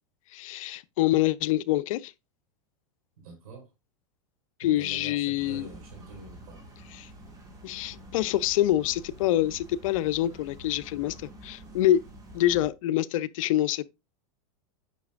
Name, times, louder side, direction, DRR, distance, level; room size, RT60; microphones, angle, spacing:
voice 1, 0.3-2.1 4.6-5.7 7.0-7.1 7.6-12.0 12.3-13.9, left 13 dB, 65° left, 0.5 m, -26 dB
voice 2, 3.2-3.7 4.6-6.6, right 3 dB, 75° right, 4.4 m, -45 dB
sound 1, 5.4-12.7, right 1 dB, 20° right, 1.7 m, -48 dB
8.4 x 5.7 x 2.4 m
supercardioid pair, 135°, 18 cm